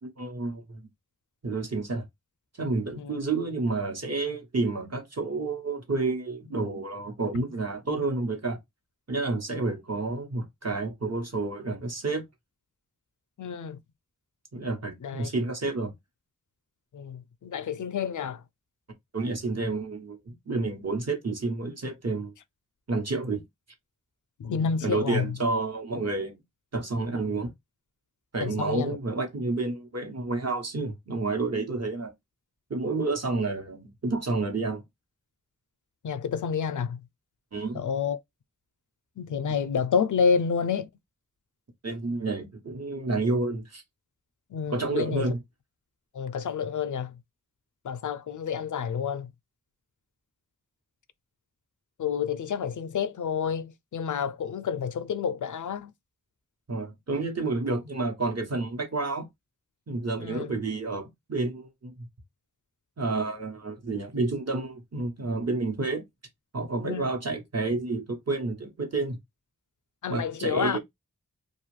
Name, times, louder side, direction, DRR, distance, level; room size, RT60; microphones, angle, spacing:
voice 1, 0.0-0.9 1.4-2.0 2.6-8.6 9.1-12.2 14.5-15.9 19.1-22.3 22.9-23.4 24.8-26.3 26.7-27.5 28.3-32.1 32.7-34.8 37.5-37.8 41.8-43.8 44.7-45.4 56.7-59.3 59.9-62.1 63.0-66.1 66.5-69.2 70.1-70.8, right 3 dB, 50° right, 1.0 m, -30 dB
voice 2, 13.4-13.8 15.0-15.3 16.9-18.4 24.4-25.4 28.4-29.0 36.0-37.0 37.7-38.2 39.2-40.9 44.5-45.3 46.1-47.2 47.8-49.3 52.0-55.9 60.2-60.5 66.8-67.1 70.0-70.8, left 6 dB, 65° left, 0.4 m, -29 dB
2.5 x 2.3 x 3.1 m
wide cardioid pair, 50°, 34 cm